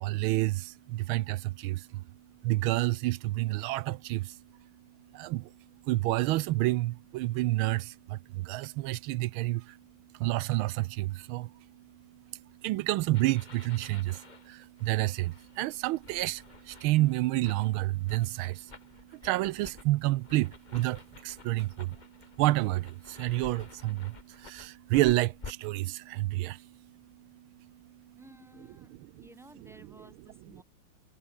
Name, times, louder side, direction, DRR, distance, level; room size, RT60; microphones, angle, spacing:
voice 1, 0.0-1.8 2.4-4.2 5.2-5.4 5.9-7.9 8.4-9.6 10.2-11.5 12.6-14.2 14.8-16.4 16.8-18.6 19.2-21.0 21.2-21.9 22.4-24.0 24.4-26.6 29.6-29.7, right 18 dB, 85° right, 1.4 m, -28 dB
sound 1, 13.1-25.5, left 4 dB, 25° left, 1.3 m, -51 dB
voice 2, 28.1-28.9 29.2-30.6, right 1 dB, ahead, 3.2 m, -54 dB
omnidirectional pair, 2.2 m